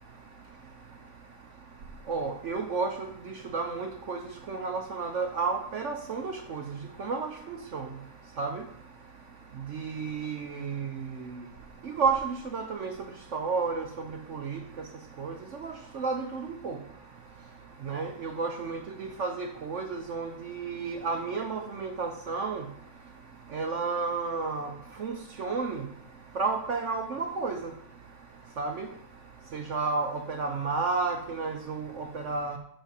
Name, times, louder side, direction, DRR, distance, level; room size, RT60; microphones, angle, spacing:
voice 1, 2.1-4.2 4.5-7.9 8.4-8.6 9.7-11.3 12.0-12.9 13.3-13.9 14.3-14.6 15.2-15.3 15.6-16.8 17.8-22.6 23.5-24.7 25.0-25.9 26.4-27.6 28.6-28.9 29.5-32.6, right 4 dB, 60° right, 5 dB, 0.8 m, -32 dB
7.2 x 5.6 x 7.0 m, 0.69 s
omnidirectional pair, 1.9 m